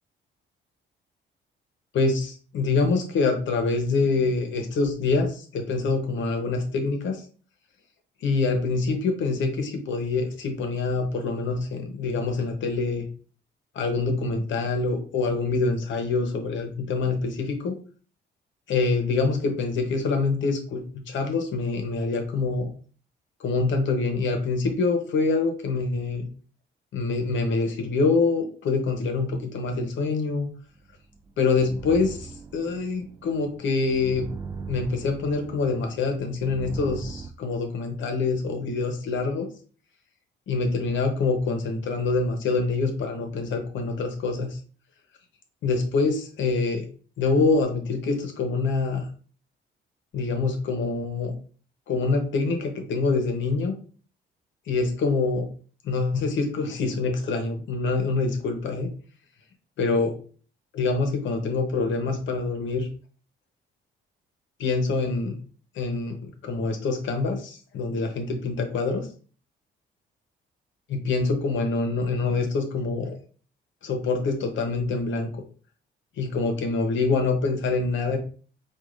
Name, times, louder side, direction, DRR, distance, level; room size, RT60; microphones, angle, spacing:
voice 1, 1.9-7.2 8.2-13.1 13.7-17.7 18.7-22.7 23.4-26.2 26.9-30.5 31.4-34.3 34.7-39.5 40.5-44.6 45.6-46.8 47.2-49.1 50.1-51.3 51.9-53.7 54.7-55.5 55.8-58.9 59.8-60.2 60.7-62.9 64.6-65.4 65.7-69.1 70.9-73.2 73.8-75.3 76.2-78.2, left 3 dB, 70° left, 5 dB, 0.9 m, -25 dB
sound 1, 30.8-37.3, right 5 dB, 15° right, 0.3 m, -39 dB
4.6 x 2.4 x 2.5 m, 0.40 s
cardioid pair, 90°, 20 cm